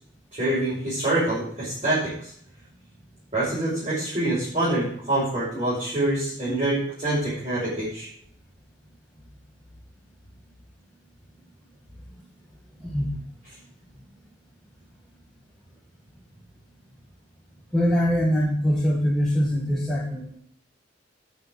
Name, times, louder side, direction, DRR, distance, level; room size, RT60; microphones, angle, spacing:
voice 1, 0.3-2.3 3.3-8.1, right 1 dB, 35° right, -10 dB, 5.6 m, -26 dB
voice 2, 12.8-13.1 17.7-20.4, equal, 5° left, -7 dB, 1.9 m, -23 dB
9.5 x 6.4 x 7.6 m, 0.62 s
head